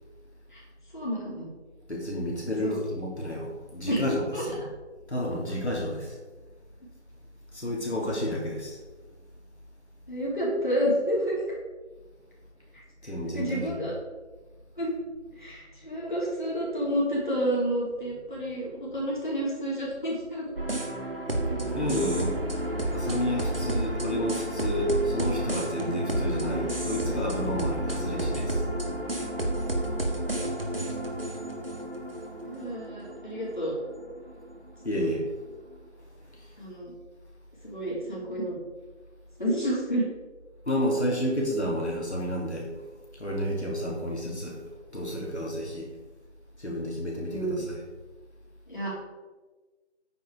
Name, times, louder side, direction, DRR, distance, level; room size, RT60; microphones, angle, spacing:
voice 1, 0.9-1.4 2.6-2.8 3.8-4.4 10.1-11.4 13.0-13.9 14.8-14.9 15.3-20.5 32.4-33.7 34.9-35.1 36.6-36.9 37.6-38.5 39.4-40.0 47.3-47.6 48.7-48.9, equal, 45° left, -5 dB, 3.3 m, -30 dB
voice 2, 1.9-4.6 5.1-6.2 7.5-8.8 13.0-13.8 21.3-21.4 21.7-28.6 34.8-35.2 40.7-42.8 43.2-44.6 44.9-45.9 46.6-47.8, equal, 70° left, -3 dB, 3.4 m, -30 dB
sound 1, 20.6-34.7, right 1 dB, 55° right, 1.7 m, -31 dB
9.1 x 7.7 x 4.8 m, 1.3 s
figure-of-eight pair, 175°, 35 cm